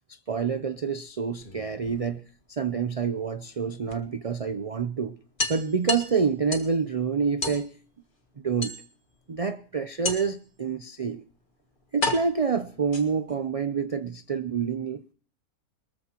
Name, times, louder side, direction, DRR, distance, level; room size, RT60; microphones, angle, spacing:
voice 1, 0.1-2.2 2.5-5.1 5.5-7.7 8.4-8.7 9.3-11.2 11.9-15.0, right 5 dB, 50° right, 0.4 m, -27 dB
sound 1, 1.3-2.4 3.9-4.0 4.4-4.5 4.8-4.9 5.4-6.8 7.4-7.7 8.6-9.2 10.0-10.5 11.3-11.4 12.0-13.4, left 2 dB, 35° left, 1.7 m, -32 dB
22.5 x 14.0 x 3.0 m
omnidirectional pair, 1.5 m